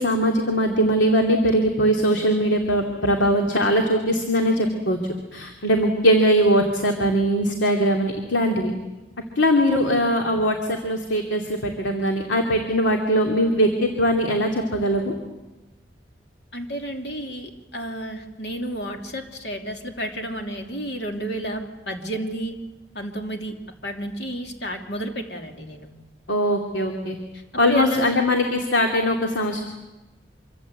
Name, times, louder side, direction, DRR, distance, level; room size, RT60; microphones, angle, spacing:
voice 1, 0.0-5.0 5.3-8.7 9.4-15.1 26.3-27.2 27.6-29.6, equal, 80° left, 3 dB, 2.6 m, -21 dB
voice 2, 16.5-22.6 22.9-23.5 23.8-25.9 27.3-28.1, equal, 65° left, 3 dB, 3.0 m, -31 dB
26.0 x 24.5 x 8.3 m, 1.1 s
head